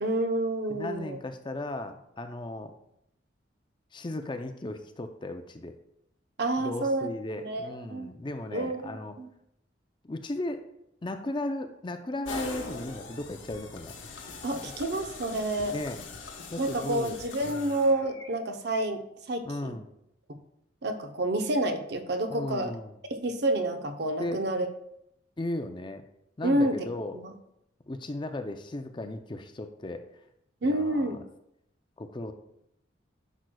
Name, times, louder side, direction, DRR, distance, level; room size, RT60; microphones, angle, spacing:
voice 1, 0.0-1.2 6.4-7.1 7.4-8.1 8.5-9.3 14.4-15.8 16.6-19.8 20.8-22.7 23.1-24.7 26.4-26.9 27.1-27.3 30.6-31.2, right 1 dB, 60° right, 7 dB, 0.8 m, -29 dB
voice 2, 0.7-2.7 3.9-5.7 6.6-9.2 10.0-10.6 11.0-13.9 14.6-14.7 15.7-16.0 16.5-17.2 17.4-17.7 19.4-19.9 22.3-22.9 24.2-24.4 25.4-26.0 26.4-27.2 27.9-30.0 30.6-31.2 32.0-32.3, left 1 dB, 25° left, 7 dB, 0.4 m, -36 dB
sound 1, 12.3-18.3, left 3 dB, 80° left, 1.0 m, -42 dB
10.5 x 6.2 x 2.3 m, 0.78 s
head